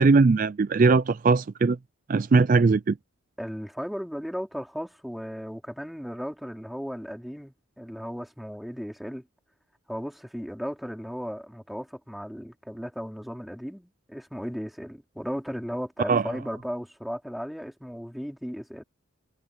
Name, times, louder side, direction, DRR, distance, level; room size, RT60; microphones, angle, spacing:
voice 1, 0.0-1.8 2.1-3.0 16.1-16.2, right 4 dB, 40° right, 0.3 m, -20 dB
voice 2, 3.4-9.2 9.9-18.8, equal, ahead, 4.5 m, -36 dB
head